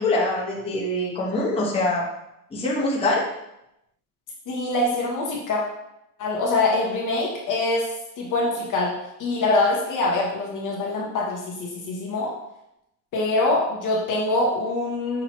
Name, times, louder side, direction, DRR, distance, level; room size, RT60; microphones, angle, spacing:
voice 1, 0.0-2.0 2.5-3.3, left 2 dB, 10° left, -6 dB, 1.0 m, -24 dB
voice 2, 4.5-5.6 6.2-7.9 8.2-8.9 9.2-12.3 13.1-15.2, left 2 dB, 40° left, -3 dB, 1.0 m, -24 dB
5.9 x 2.9 x 2.9 m, 0.84 s
cardioid pair, 155°, 49 cm